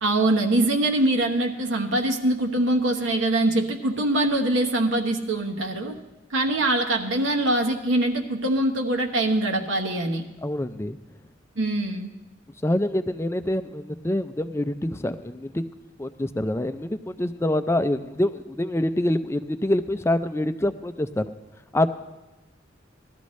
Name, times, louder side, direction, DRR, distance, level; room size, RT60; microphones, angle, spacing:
voice 1, 0.0-6.0 6.3-10.2 11.6-12.1, right 1 dB, 85° right, 2 dB, 1.1 m, -23 dB
voice 2, 10.4-11.0 12.6-15.6 16.0-21.3 21.7-21.9, left 1 dB, 15° left, 11 dB, 0.4 m, -26 dB
18.0 x 13.0 x 3.1 m, 1.0 s
head